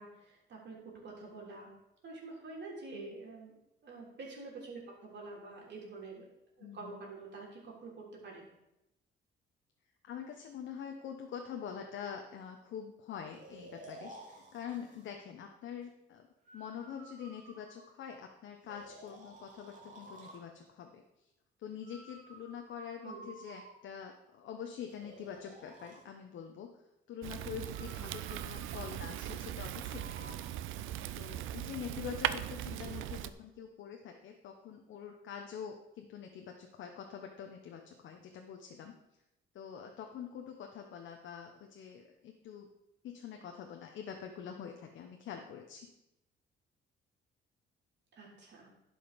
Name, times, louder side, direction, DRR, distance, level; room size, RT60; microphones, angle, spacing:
voice 1, 0.0-1.7 2.0-3.5 3.8-6.3 6.6-8.4 23.0-23.3 32.7-33.0 48.1-48.7, right 3 dB, 60° right, -2 dB, 3.4 m, -47 dB
voice 2, 6.6-7.0 10.0-16.3 16.5-21.0 21.6-26.7 27.1-30.5 31.2-39.0 39.5-42.7 43.0-45.9, left 8 dB, 75° left, 3 dB, 1.0 m, -45 dB
Breathing, 13.3-15.1 16.4-18.1 18.7-20.5 21.8-24.1 24.9-26.0 27.7-30.5, right 2 dB, 40° right, 2.5 m, -54 dB
Fire, 27.2-33.3, right 12 dB, 85° right, 0.5 m, -39 dB
11.5 x 5.2 x 5.1 m, 0.88 s
cardioid pair, 90°, 20 cm